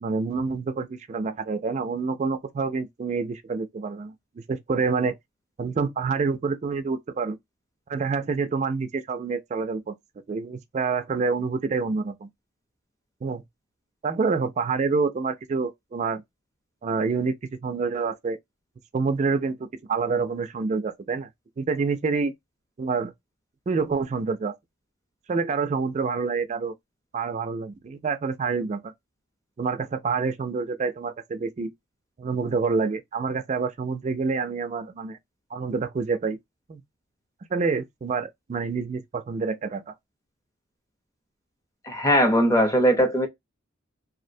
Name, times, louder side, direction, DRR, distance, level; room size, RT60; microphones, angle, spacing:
voice 1, 0.0-5.2 5.6-7.4 7.9-9.9 10.3-12.3 13.2-13.4 14.0-16.2 16.8-17.4 17.6-18.4 18.9-21.3 21.6-22.3 22.8-23.1 23.7-24.5 25.3-26.7 27.1-28.9 29.6-31.7 32.2-35.2 35.5-36.4 36.7-36.8 37.5-39.9, right 4 dB, 35° right, 0.3 m, -27 dB
voice 2, 41.8-43.3, equal, 15° left, 0.6 m, -20 dB
2.5 x 2.0 x 2.6 m
head